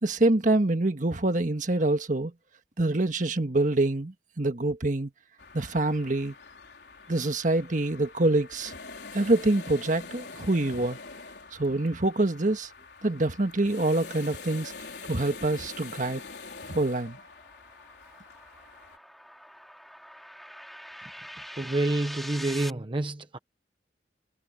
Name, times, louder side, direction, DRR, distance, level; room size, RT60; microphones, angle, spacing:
voice 1, 0.0-2.3 2.8-5.1 5.5-6.3 7.1-8.7 9.1-11.0 11.5-12.7 13.0-14.7 15.1-16.2 16.7-17.2, right 2 dB, 45° right, 1.6 m, -26 dB
sound 1, 5.4-19.0, left 4 dB, 70° left, 4.5 m, -45 dB
sound 2, 16.2-22.7, equal, ahead, 4.5 m, -44 dB
voice 2, 21.5-23.4, right 2 dB, 30° right, 0.9 m, -28 dB
head